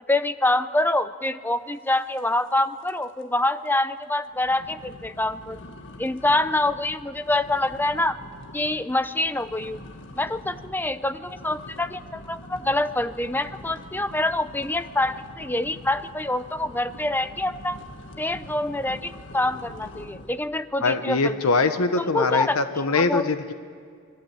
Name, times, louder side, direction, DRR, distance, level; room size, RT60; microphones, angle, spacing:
voice 1, 0.0-5.6 6.0-8.2 8.5-9.8 10.2-17.8 18.2-21.3 22.0-23.3, left 2 dB, 10° left, 12 dB, 0.6 m, -26 dB
sound 1, 2.2-2.6 2.8-3.2 3.7-3.8 4.3-20.5, left 1 dB, 55° left, 1.8 m, -44 dB
voice 2, 20.8-23.5, left 3 dB, 75° left, 9 dB, 1.1 m, -23 dB
28.0 x 21.0 x 9.0 m, 2.1 s
head